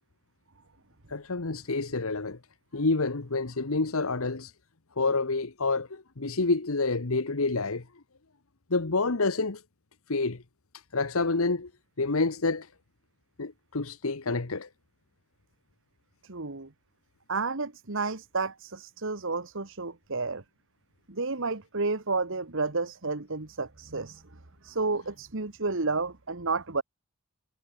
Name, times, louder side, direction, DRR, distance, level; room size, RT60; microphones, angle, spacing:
voice 1, 1.1-2.4 2.7-4.5 5.0-7.8 8.7-9.6 10.1-10.4 10.9-11.7 12.0-12.7 13.4-14.7, left 3 dB, 65° left, 1.2 m, -28 dB
voice 2, 16.2-16.7 17.3-20.4 21.1-24.2 24.6-26.8, right 3 dB, 60° right, 1.7 m, -31 dB
head